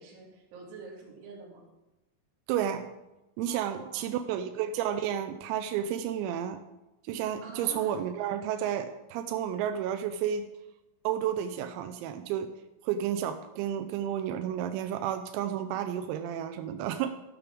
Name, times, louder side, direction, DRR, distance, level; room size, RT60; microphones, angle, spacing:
voice 1, 0.0-1.6 3.5-4.3 7.4-7.9 8.6-8.7, right 4 dB, 60° right, -1 dB, 4.0 m, -47 dB
voice 2, 2.5-2.9 3.4-6.6 7.1-10.5 11.0-12.5 12.8-17.1, right 9 dB, 90° right, 8 dB, 3.4 m, -31 dB
12.5 x 11.5 x 3.5 m, 0.96 s
omnidirectional pair, 6.0 m